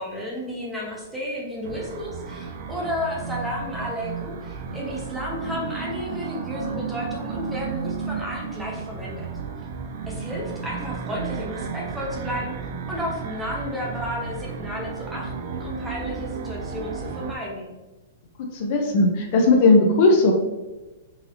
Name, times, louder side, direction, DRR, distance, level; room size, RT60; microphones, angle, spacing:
voice 1, 0.0-9.3 10.1-12.5 12.9-17.7, left 1 dB, 5° right, -3 dB, 0.6 m, -32 dB
sound 1, 1.6-17.3, right 5 dB, 50° right, 0.3 m, -33 dB
voice 2, 18.5-20.3, left 2 dB, 40° left, 2 dB, 0.5 m, -17 dB
3.9 x 2.6 x 2.8 m, 1.1 s
hypercardioid pair, 170°, 0 cm